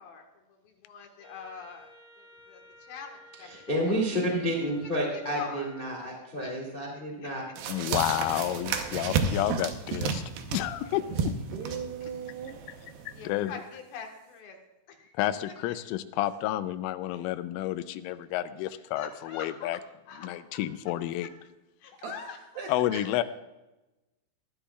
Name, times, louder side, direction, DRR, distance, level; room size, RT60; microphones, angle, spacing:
voice 1, 0.0-1.9 2.2-3.5 3.8-4.0 4.9-5.7 6.4-7.3 7.7-8.1 8.7-9.1 12.0-12.1 13.1-14.6 14.9-15.2 15.4-15.8 19.0-19.8 20.1-20.3 21.8-22.7, left 5 dB, 65° left, 2 dB, 2.6 m, -45 dB
Wind instrument woodwind instrument, 1.2-6.1, left 3 dB, 20° right, 2.7 m, -53 dB
voice 2, 3.4-7.4, equal, 35° left, -1 dB, 0.7 m, -30 dB
sound 1, 7.6-13.3, right 6 dB, 90° right, 2.1 m, -32 dB
voice 3, 7.7-10.2 10.5-11.4 13.1-13.5 15.1-19.8 20.2-21.3 22.7-23.2, left 13 dB, 85° left, 11 dB, 3.1 m, -30 dB
voice 4, 11.5-12.7 17.1-17.2 22.0-23.0, right 6 dB, 75° right, 1 dB, 2.5 m, -39 dB
20.5 x 11.5 x 2.4 m, 1.0 s
omnidirectional pair, 5.7 m